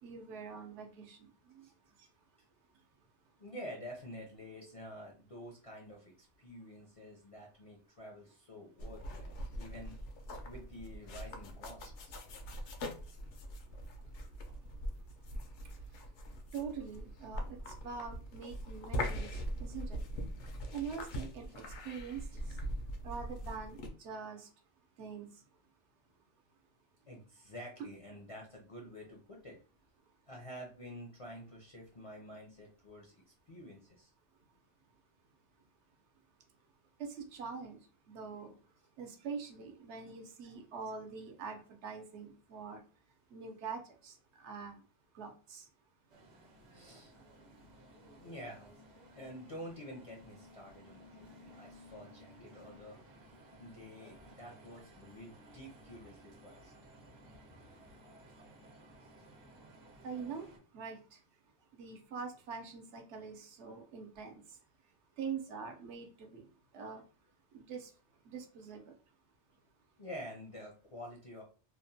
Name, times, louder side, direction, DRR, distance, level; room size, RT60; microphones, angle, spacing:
voice 1, 0.0-1.7 16.5-17.6 17.8-20.0 20.7-22.4 23.0-24.5 25.0-25.3 37.0-37.8 38.1-38.5 39.0-42.8 43.3-44.8 45.1-45.6 60.0-60.5 60.7-61.2 61.7-64.4 65.2-66.5 66.7-67.0 67.5-67.9 68.2-68.8, right 6 dB, 75° right, 3 dB, 0.9 m, -44 dB
voice 2, 3.4-10.0 10.4-12.1 27.1-29.6 30.3-34.1 46.7-47.1 48.2-48.7 49.1-53.0 53.6-56.7 70.0-71.4, equal, 45° left, -2 dB, 0.4 m, -49 dB
sound 1, 8.8-23.9, equal, 85° left, 0.9 m, -42 dB
sound 2, 46.1-60.6, equal, 45° right, 0.7 m, -57 dB
2.9 x 2.1 x 2.6 m, 0.37 s
omnidirectional pair, 1.2 m